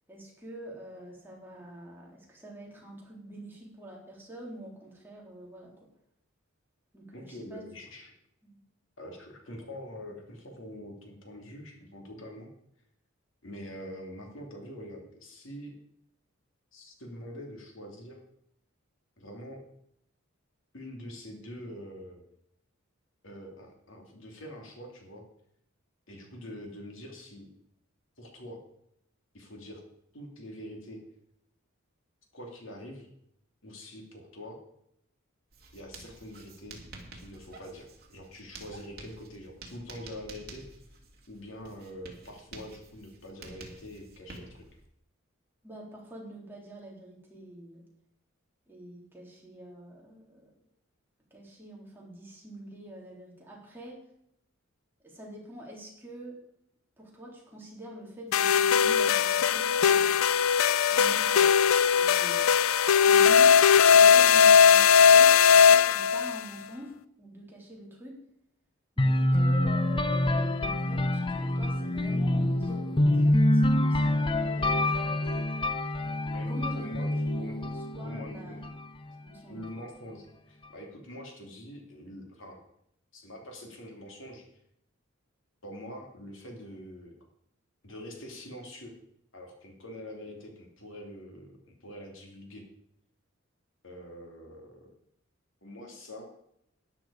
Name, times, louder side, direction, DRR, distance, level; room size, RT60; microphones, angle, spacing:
voice 1, 0.1-5.7 6.9-7.6 8.4-8.6 45.6-47.8 48.7-50.5 51.3-54.0 55.0-56.4 57.0-59.7 60.9-61.5 61.9-62.4 63.1-63.6 63.9-68.2 69.0-75.7 76.5-77.1 78.0-78.7 79.2-79.7, right 1 dB, 10° right, -3 dB, 3.4 m, -45 dB
voice 2, 7.1-8.1 9.0-12.5 13.4-15.8 16.7-18.2 19.2-19.6 20.7-22.2 23.2-25.3 26.1-27.5 28.2-28.6 29.3-29.8 30.1-31.0 32.3-33.1 33.6-34.6 35.7-36.8 37.1-40.7 41.3-44.7 76.3-77.6 78.0-78.6 79.5-82.6 83.1-84.4 85.6-87.1 87.8-88.9 89.3-92.6 93.8-94.9 95.6-96.3, equal, 70° left, 2 dB, 2.8 m, -44 dB
Writing, 35.5-44.8, right 3 dB, 50° right, 2.4 m, -49 dB
sound 1, 58.3-66.4, left 7 dB, 85° left, 0.4 m, -19 dB
sound 2, 69.0-78.8, left 1 dB, 25° left, 0.7 m, -26 dB
13.0 x 10.0 x 4.9 m, 0.75 s
head